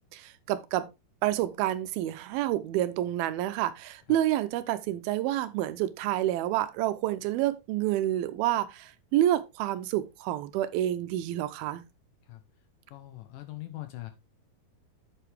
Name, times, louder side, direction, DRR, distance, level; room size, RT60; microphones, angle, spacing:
voice 1, 0.5-0.9 1.2-11.8, right 13 dB, 90° right, 2.6 m, -28 dB
voice 2, 12.9-14.1, left 16 dB, 75° left, 2.2 m, -41 dB
8.1 x 6.9 x 3.4 m
omnidirectional pair, 4.3 m